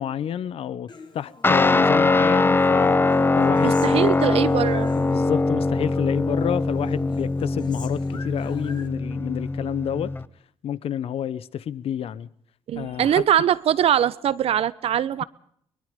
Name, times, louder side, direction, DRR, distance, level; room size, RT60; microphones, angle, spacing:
voice 1, 0.0-3.0 3.4-4.1 4.9-10.1 10.6-12.3 12.7-13.2, left 10 dB, 65° left, 1.0 m, -29 dB
Human voice, 0.9-2.1 2.4-5.6 5.9-6.6 6.9-8.9, left 4 dB, 45° left, 3.0 m, -45 dB
Guitar, 1.4-10.2, left 3 dB, 20° left, 0.8 m, -22 dB
voice 2, 3.6-4.9 12.7-15.2, right 10 dB, 70° right, 1.1 m, -22 dB
23.5 x 21.0 x 5.3 m
cardioid pair, 80°, 11 cm